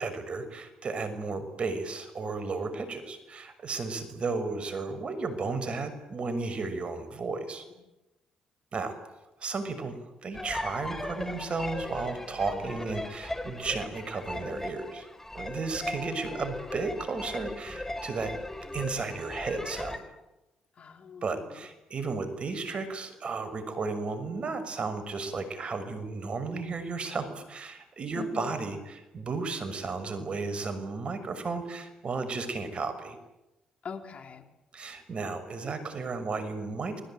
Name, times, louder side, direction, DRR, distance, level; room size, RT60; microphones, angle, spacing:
voice 1, 0.0-7.6 8.7-8.9 9.4-15.1 15.3-18.3 18.7-20.0 21.2-33.2 34.7-37.0, right 4 dB, 50° right, 11 dB, 6.3 m, -34 dB
sound 1, 10.3-20.0, left 1 dB, 15° left, 4.5 m, -38 dB
voice 2, 15.8-16.4 20.8-21.3 28.2-28.6 33.8-34.4, left 5 dB, 55° left, 6 dB, 3.6 m, -42 dB
29.0 x 21.5 x 9.2 m, 0.97 s
supercardioid pair, 55°, 2 cm